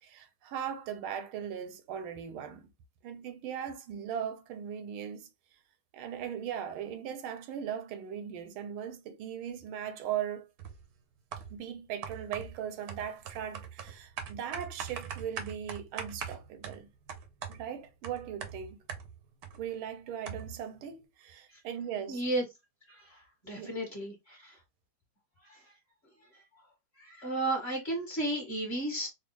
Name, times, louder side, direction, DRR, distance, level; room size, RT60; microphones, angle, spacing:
voice 1, 0.0-2.7 3.0-5.3 5.9-10.5 11.5-16.9 17.5-18.8 19.6-22.2 23.4-23.8, right 9 dB, 90° right, 1.5 m, -39 dB
sound 1, 10.6-10.9 11.3-11.7 12.0-19.6 19.9-20.0 20.3-20.7, right 7 dB, 70° right, 0.9 m, -42 dB
voice 2, 22.1-22.4 22.9-23.2 23.4-24.6 25.4-25.6 27.0-29.1, right 1 dB, 35° left, 1.6 m, -33 dB
4.2 x 2.2 x 3.0 m
omnidirectional pair, 2.3 m